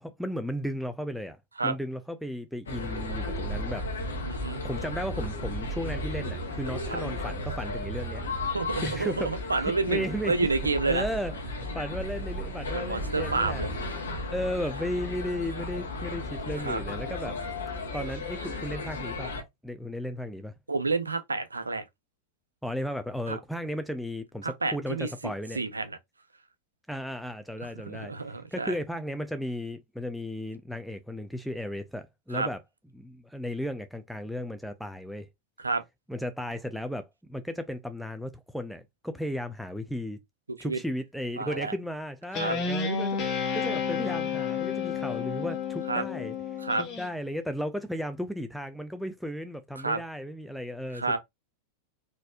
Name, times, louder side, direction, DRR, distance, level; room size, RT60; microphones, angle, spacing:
voice 1, 0.0-3.9 4.6-8.2 8.8-9.3 9.6-10.5 10.8-13.9 14.3-17.4 17.9-19.3 19.6-20.5 22.6-25.6 26.9-28.1 28.5-32.6 32.9-35.3 36.1-40.2 40.6-51.2, equal, ahead, 0.4 m, -35 dB
sound 1, 2.7-19.4, left 1 dB, 70° left, 0.9 m, -34 dB
voice 2, 4.2-4.6 6.9-7.0 8.5-11.0 12.7-13.7 16.6-16.8 20.7-21.9 23.3-23.4 24.4-26.0 27.8-28.7 32.3-32.5 35.6-35.8 40.5-40.8 41.4-41.7 42.4-42.6 45.9-46.0 46.6-46.8 49.8-50.0 50.9-51.2, right 3 dB, 80° right, 0.5 m, -29 dB
Guitar, 42.3-47.1, left 6 dB, 35° left, 1.0 m, -31 dB
4.0 x 2.6 x 2.4 m
figure-of-eight pair, 90°, 0 cm